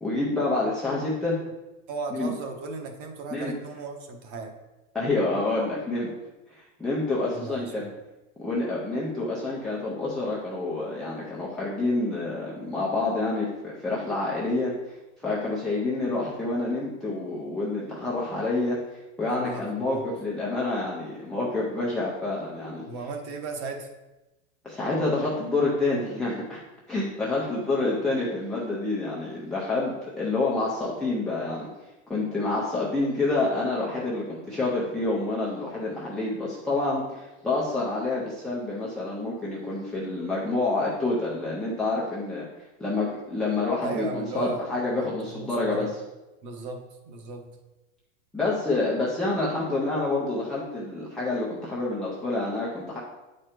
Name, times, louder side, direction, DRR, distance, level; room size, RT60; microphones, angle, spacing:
voice 1, 0.0-1.4 2.1-2.3 3.3-3.5 4.9-6.1 6.8-7.9 8.4-15.0 15.2-18.8 19.2-22.9 24.6-26.6 26.9-31.7 32.1-42.5 42.8-45.9 48.3-53.0, left 2 dB, ahead, -8 dB, 0.3 m, -28 dB
voice 2, 1.9-4.5 7.3-7.9 19.3-20.0 22.9-23.9 43.8-45.9 46.4-47.5, right 4 dB, 35° right, 4 dB, 1.1 m, -36 dB
8.7 x 4.4 x 4.8 m, 1.0 s
supercardioid pair, 160°, 37 cm